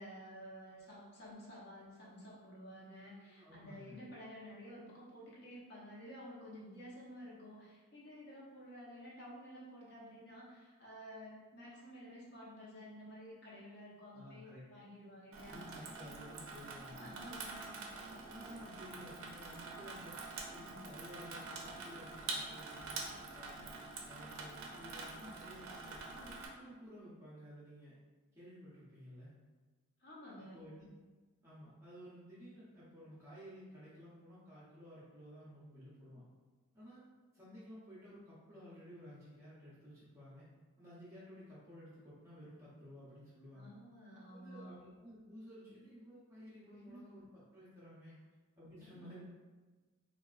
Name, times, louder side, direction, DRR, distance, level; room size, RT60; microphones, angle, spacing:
voice 1, 0.0-15.9 17.0-17.9 30.0-30.7 43.5-44.7 46.7-47.0 48.1-48.2 48.8-49.2, equal, 50° left, -6 dB, 0.7 m, -52 dB
voice 2, 3.3-4.0 14.1-14.8 15.5-17.2 18.1-20.2 20.5-23.7 24.1-27.9 28.3-29.3 30.3-30.9 31.4-36.2 36.7-37.0 37.3-40.5 40.8-43.7 44.1-47.3 47.5-48.2 48.6-49.2, equal, 15° right, -11 dB, 0.6 m, -54 dB
Water tap faucet / Sink (filling or washing), 15.3-26.5, right 3 dB, 65° right, 0.4 m, -46 dB
3.8 x 2.3 x 2.3 m, 1.3 s
head